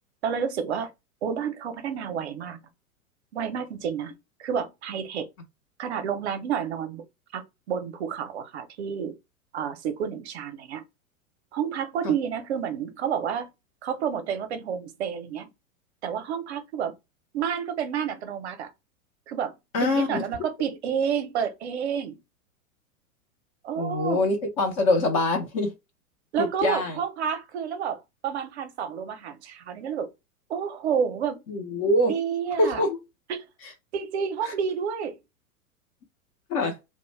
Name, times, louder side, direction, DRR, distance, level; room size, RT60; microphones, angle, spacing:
voice 1, 0.2-0.9 1.2-2.6 3.3-4.1 4.4-5.3 5.8-7.0 7.3-9.1 9.5-10.8 11.5-13.5 13.8-15.5 16.0-16.9 17.3-18.7 19.3-19.5 19.8-22.2 23.6-24.3 26.3-30.1 30.5-31.4 32.0-32.8 33.3-33.4 33.9-35.2, right 7 dB, 50° right, 0.6 m, -30 dB
voice 2, 19.7-20.3 23.8-25.7 26.4-27.0 31.5-32.1 32.6-33.0 36.5-36.8, left 2 dB, 25° left, 0.4 m, -24 dB
2.4 x 2.1 x 3.1 m
figure-of-eight pair, 95°, 43 cm